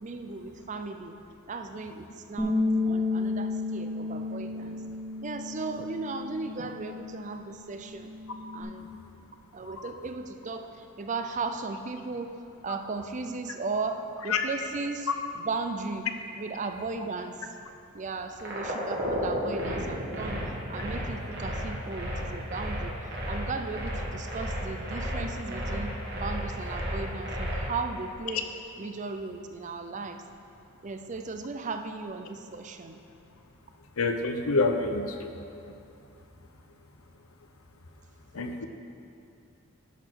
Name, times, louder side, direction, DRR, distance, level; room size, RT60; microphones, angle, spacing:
voice 1, 0.0-1.2 1.5-2.6 2.8-4.8 5.2-8.1 8.5-8.9 9.5-12.4 12.6-16.1 16.4-17.5 17.9-28.5 28.8-30.2 30.8-33.0 38.4-38.6, right 3 dB, 35° right, 7 dB, 0.4 m, -36 dB
Bass guitar, 2.4-8.6, left 3 dB, ahead, 1.4 m, -32 dB
sound 1, 18.4-27.7, equal, 50° right, 2.0 m, -33 dB
voice 2, 34.0-35.3 35.6-35.7 38.3-38.7, left 3 dB, 85° left, 6 dB, 0.7 m, -27 dB
11.0 x 6.3 x 4.6 m, 2.6 s
head